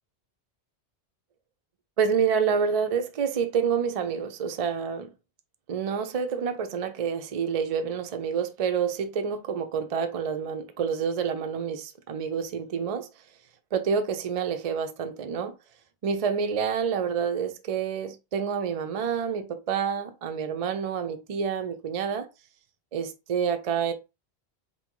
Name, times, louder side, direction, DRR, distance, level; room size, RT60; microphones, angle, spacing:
voice 1, 2.0-5.1 5.7-13.1 13.7-15.5 16.0-22.3 22.9-23.9, right 6 dB, 45° right, 0.5 m, -28 dB
4.0 x 2.1 x 4.5 m
omnidirectional pair, 1.1 m